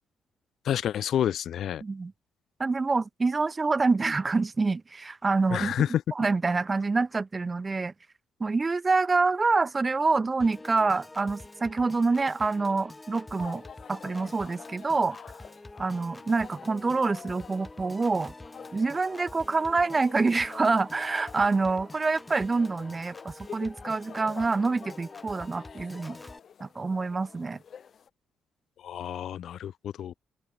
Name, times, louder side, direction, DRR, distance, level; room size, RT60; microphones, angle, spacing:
voice 1, 0.7-1.8 5.5-6.0 28.8-30.1, left 10 dB, 55° left, 0.5 m, -29 dB
voice 2, 1.8-2.1 2.6-5.9 6.1-7.9 8.4-13.6 13.9-15.2 15.8-18.3 18.7-26.2 26.6-27.6, right 3 dB, 20° right, 0.8 m, -26 dB
Piano / Organ, 10.4-26.4, left 2 dB, 10° left, 6.0 m, -46 dB
sound 1, 13.3-28.1, left 7 dB, 40° left, 3.9 m, -48 dB
open air
cardioid pair, 170°, 0 cm